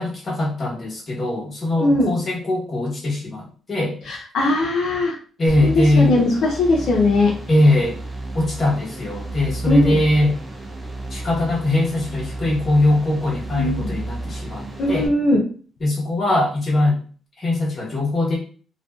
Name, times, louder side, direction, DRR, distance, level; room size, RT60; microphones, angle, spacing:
voice 1, 0.0-4.0 5.4-6.1 7.5-8.0 8.3-10.4 11.1-15.1 15.8-17.0 17.4-18.4, left 1 dB, 40° left, -4 dB, 1.0 m, -21 dB
voice 2, 1.8-2.1 4.0-5.2 5.6-7.3 9.7-10.0 13.5-13.9 14.8-15.4, left 2 dB, 75° left, -2 dB, 0.5 m, -19 dB
sound 1, 5.5-15.1, right 2 dB, 20° right, 0.6 m, -32 dB
2.5 x 2.1 x 2.3 m, 0.42 s
cardioid pair, 90°, 0 cm